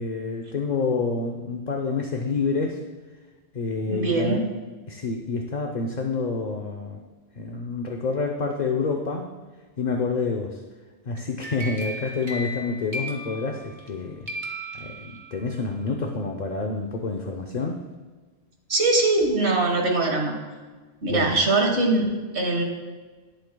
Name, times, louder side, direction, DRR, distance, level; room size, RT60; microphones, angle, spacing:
voice 1, 0.0-2.9 3.5-4.4 4.9-7.0 7.3-9.3 9.8-10.6 11.1-14.3 14.7-17.8 21.1-21.4, left 4 dB, 45° left, 2 dB, 0.8 m, -28 dB
voice 2, 3.9-4.4 18.7-20.3 21.0-22.6, right 2 dB, 80° right, 2 dB, 1.8 m, -22 dB
sound 1, 11.2-13.9 14.3-15.6, equal, 45° right, 1.3 m, -36 dB
19.0 x 7.9 x 2.3 m, 1.4 s
omnidirectional pair, 1.1 m